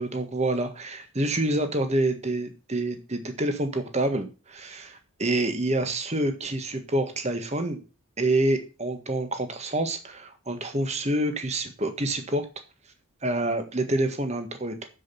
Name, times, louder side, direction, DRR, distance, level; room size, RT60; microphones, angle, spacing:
voice 1, 0.0-7.8 8.2-12.4 13.2-14.7, right 1 dB, 30° right, 7 dB, 1.6 m, -27 dB
7.6 x 7.5 x 5.8 m, 0.32 s
head